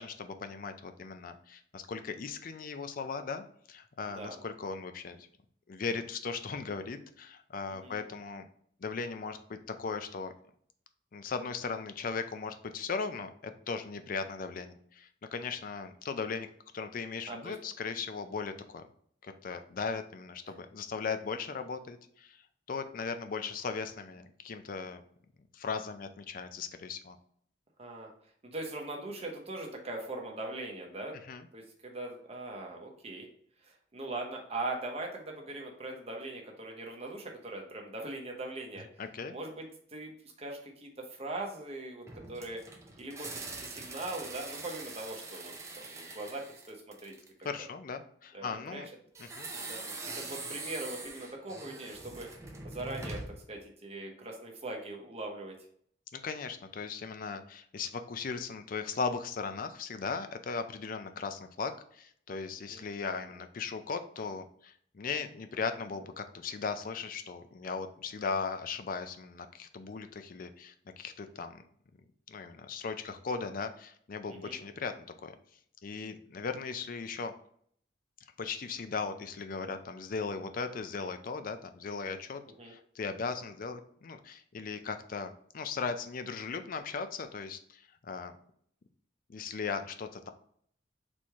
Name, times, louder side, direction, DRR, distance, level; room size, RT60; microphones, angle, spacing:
voice 1, 0.0-5.3 5.7-8.5 8.8-10.3 11.1-16.5 16.7-18.8 19.2-22.4 22.7-25.0 25.5-27.2 31.3-31.5 39.0-39.3 47.4-48.9 49.2-49.5 56.1-71.6 72.3-74.9 75.2-75.3 75.8-77.3 78.4-88.3 89.3-90.3, left 5 dB, 50° left, 9 dB, 0.4 m, -38 dB
voice 2, 4.1-4.4 7.7-8.0 17.3-17.5 27.8-28.1 28.4-31.2 31.5-33.3 33.6-38.8 39.3-42.6 43.0-47.1 48.3-48.8 49.5-52.3 52.6-55.5 62.7-63.3 74.3-74.6 82.6-82.7, right 2 dB, 35° right, 0 dB, 0.9 m, -41 dB
sound 1, 42.1-47.4 49.1-53.5, right 3 dB, 15° right, 0.6 m, -43 dB
4.2 x 3.1 x 3.5 m, 0.62 s
head